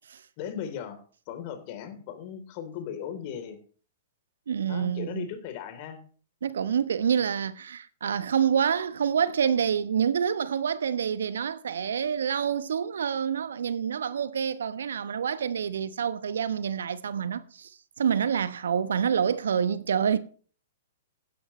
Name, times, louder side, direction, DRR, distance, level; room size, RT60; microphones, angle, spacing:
voice 1, 0.4-3.6 4.7-6.0, left 8 dB, 45° left, 3.4 m, -37 dB
voice 2, 4.5-5.3 6.4-17.7 18.0-20.2, right 7 dB, 70° right, 1.0 m, -27 dB
16.5 x 12.5 x 3.2 m
figure-of-eight pair, 110°, 0 cm